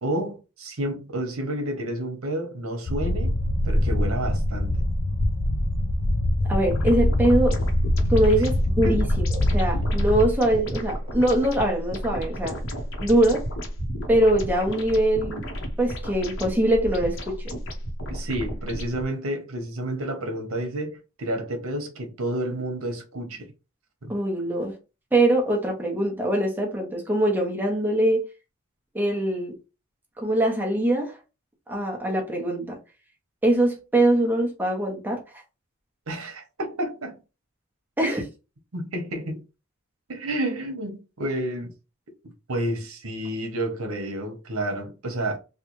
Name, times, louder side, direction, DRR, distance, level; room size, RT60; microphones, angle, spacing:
voice 1, 0.0-3.3 3.6-4.7 8.8-9.0 18.1-23.5 24.0-24.1 36.1-37.2 38.0-38.1 38.7-39.4 40.1-41.7 42.5-45.4, right 1 dB, 80° right, 1.0 m, -30 dB
sound 1, 2.9-10.3, left 1 dB, 45° left, 0.5 m, -23 dB
voice 2, 6.5-7.6 8.1-12.6 13.0-13.4 14.1-15.4 15.8-17.6 24.1-24.7 25.1-28.2 28.9-29.6 30.2-31.2 31.7-32.8 33.4-35.2 38.0-38.2, right 1 dB, 10° right, 0.9 m, -23 dB
sound 2, 6.7-19.0, equal, 65° left, 1.0 m, -32 dB
3.3 x 2.3 x 3.0 m
head